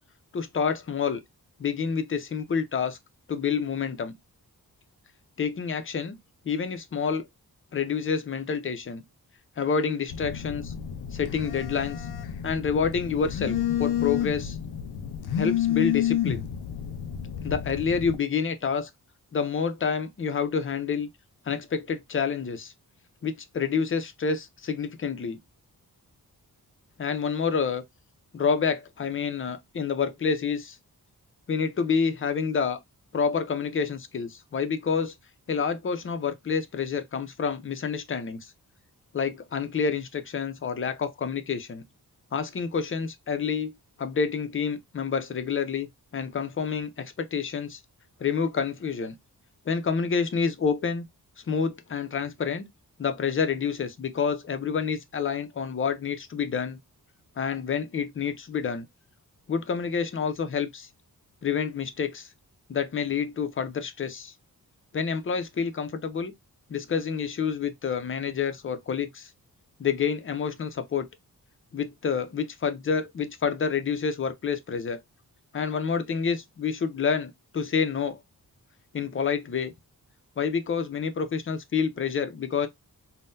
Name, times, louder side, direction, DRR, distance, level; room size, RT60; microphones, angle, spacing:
voice 1, 0.3-1.2 1.6-3.0 3.3-4.1 5.4-6.2 6.4-7.3 7.7-9.0 9.6-10.7 11.1-12.1 12.4-14.6 15.4-16.5 17.4-18.9 19.3-21.1 21.5-22.7 23.2-25.4 27.0-27.8 28.3-30.8 31.5-32.8 33.1-35.1 35.5-38.5 39.1-41.8 42.3-43.7 44.0-47.8 48.2-49.2 49.7-51.0 51.5-52.7 53.0-56.8 57.4-58.9 59.5-60.9 61.4-62.3 62.7-64.3 64.9-66.3 66.7-69.3 69.8-71.1 71.7-75.0 75.5-78.2 78.9-79.7 80.4-82.7, left 6 dB, 35° left, 0.4 m, -28 dB
Telephone, 10.1-18.2, left 10 dB, 85° left, 0.5 m, -30 dB
3.6 x 2.0 x 2.6 m
wide cardioid pair, 145°, 37 cm